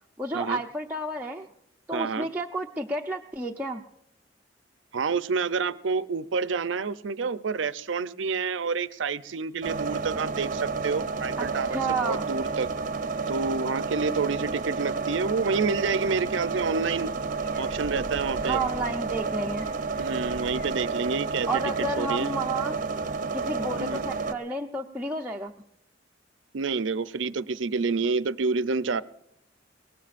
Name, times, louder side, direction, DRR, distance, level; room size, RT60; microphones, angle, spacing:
voice 1, 0.2-1.5 1.9-3.8 11.4-11.5 11.7-12.3 18.4-19.7 21.5-22.8 23.3-25.5, right 2 dB, 10° right, -1 dB, 0.6 m, -31 dB
voice 2, 1.9-2.3 4.9-12.7 13.3-17.1 17.6-18.6 19.9-22.3 23.8-24.0 26.5-29.0, right 4 dB, 80° right, 15 dB, 0.6 m, -28 dB
sound 1, 9.6-24.3, right 4 dB, 45° right, 0.7 m, -31 dB
sound 2, 15.9-20.8, equal, 15° left, 3.5 m, -46 dB
23.0 x 19.0 x 2.5 m, 0.74 s
head